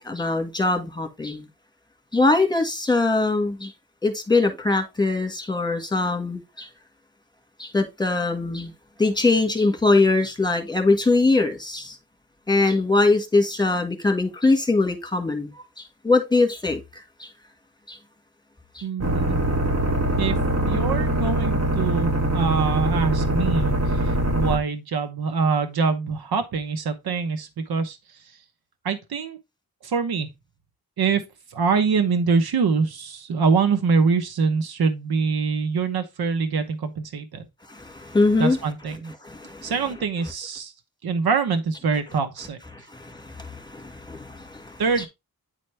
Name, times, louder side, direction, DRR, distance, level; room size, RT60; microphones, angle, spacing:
voice 1, 0.0-1.5 2.1-3.7 4.0-6.7 7.6-8.7 9.0-12.0 12.5-16.8 17.2-17.3 17.9-18.0 18.8-18.9 37.7-38.6 39.2-39.7 42.9-44.8, left 3 dB, 10° left, 1.8 m, -22 dB
voice 2, 18.8-19.4 20.2-28.4 28.8-29.4 29.8-30.3 31.0-31.2 31.5-37.5 38.4-39.1 39.6-40.7 41.0-42.6 44.8-45.1, right 5 dB, 85° right, 1.0 m, -24 dB
sound 1, 19.0-24.6, right 1 dB, 40° right, 2.6 m, -23 dB
9.3 x 4.3 x 3.3 m
cardioid pair, 70°, 36 cm